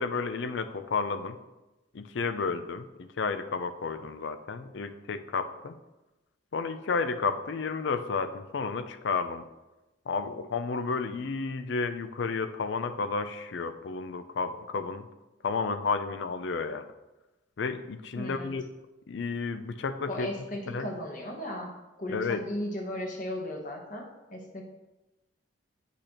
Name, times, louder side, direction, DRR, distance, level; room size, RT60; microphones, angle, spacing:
voice 1, 0.0-1.4 1.9-5.8 6.5-9.4 10.1-15.1 15.4-16.9 17.6-18.6 19.1-20.3 20.7-20.9 22.1-22.4, left 4 dB, 60° left, 10 dB, 0.4 m, -32 dB
voice 2, 18.2-18.5 20.1-24.6, left 1 dB, 40° left, 1 dB, 1.0 m, -36 dB
8.4 x 5.0 x 2.9 m, 1.0 s
head